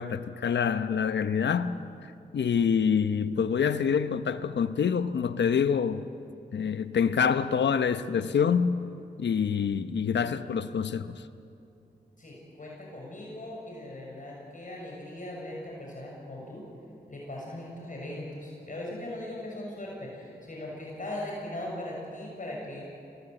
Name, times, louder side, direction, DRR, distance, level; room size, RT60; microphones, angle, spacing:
voice 1, 0.0-1.8 2.3-6.0 6.5-8.8 9.2-11.2, left 7 dB, 85° left, 0.9 m, -26 dB
voice 2, 12.2-16.7 17.1-22.9, left 1 dB, 45° left, 6.6 m, -39 dB
24.0 x 19.0 x 8.0 m
cardioid pair, 45°, 18 cm